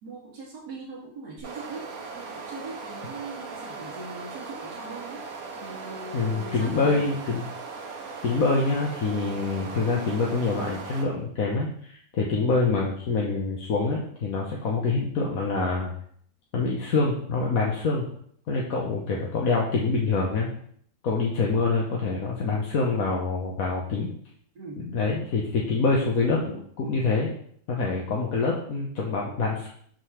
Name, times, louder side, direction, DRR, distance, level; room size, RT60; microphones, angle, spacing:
voice 1, 0.0-1.9 2.1-5.2 5.6-7.0 24.5-24.9, right 3 dB, 90° right, -9 dB, 2.5 m, -40 dB
sound 1, 1.4-11.0, right 4 dB, 60° right, 1.5 m, -39 dB
voice 2, 6.1-7.4 8.2-15.9 16.5-18.1 18.5-20.5 21.0-24.1 24.8-27.3 27.7-29.7, left 3 dB, 60° left, -2 dB, 1.5 m, -26 dB
6.8 x 3.9 x 6.3 m, 0.62 s
omnidirectional pair, 1.7 m